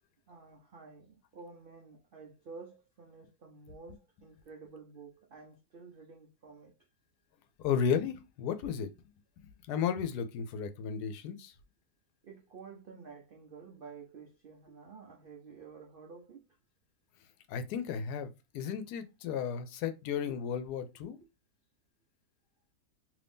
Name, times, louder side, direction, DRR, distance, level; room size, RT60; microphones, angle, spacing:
voice 1, 0.3-6.7 12.2-16.5, right 5 dB, 75° right, 0.5 m, -51 dB
voice 2, 7.6-8.9 9.7-11.5 17.5-21.2, left 7 dB, 85° left, 1.1 m, -34 dB
2.8 x 2.7 x 3.4 m
omnidirectional pair, 1.7 m